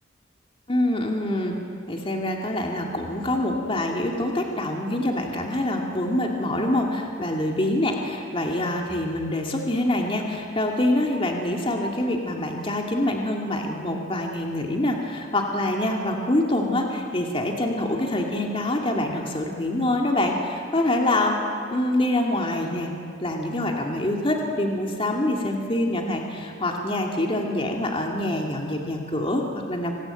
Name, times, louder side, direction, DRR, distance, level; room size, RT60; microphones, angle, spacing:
voice 1, 0.7-1.5 1.9-21.4 21.7-22.9 23.2-29.9, left 1 dB, 30° left, 1 dB, 2.3 m, -25 dB
25.5 x 20.0 x 9.0 m, 2.4 s
head